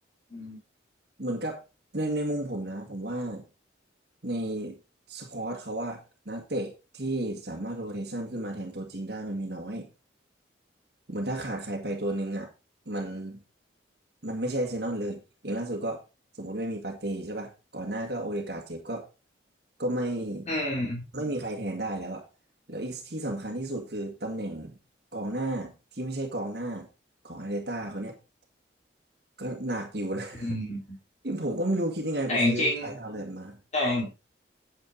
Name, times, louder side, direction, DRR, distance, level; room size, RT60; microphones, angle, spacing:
voice 1, 1.2-1.6 1.9-3.4 4.2-4.8 5.1-9.9 11.1-12.5 12.9-13.4 14.2-16.0 16.3-19.0 19.8-20.5 21.1-22.3 22.7-24.8 25.1-26.9 27.2-28.1 29.4-30.5 31.2-33.6, right 1 dB, 55° right, 1.9 m, -32 dB
voice 2, 20.5-21.0 30.4-30.8 32.3-32.9 33.7-34.1, left 1 dB, 35° left, 2.9 m, -28 dB
8.8 x 8.8 x 3.9 m
head